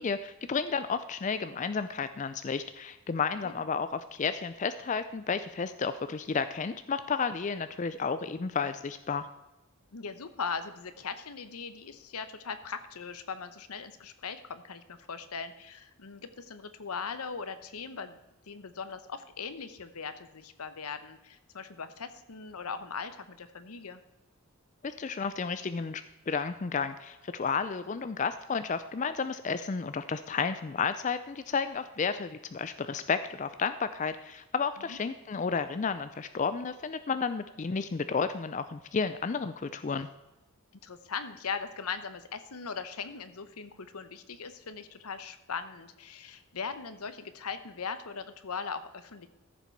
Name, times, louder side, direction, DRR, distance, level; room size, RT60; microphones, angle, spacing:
voice 1, 0.0-9.3 24.8-40.1, left 5 dB, 35° left, 11 dB, 0.4 m, -32 dB
voice 2, 9.9-18.2 18.5-24.0 34.9-35.0 40.8-49.3, left 5 dB, 85° left, 11 dB, 0.9 m, -39 dB
14.0 x 7.2 x 4.5 m, 0.97 s
head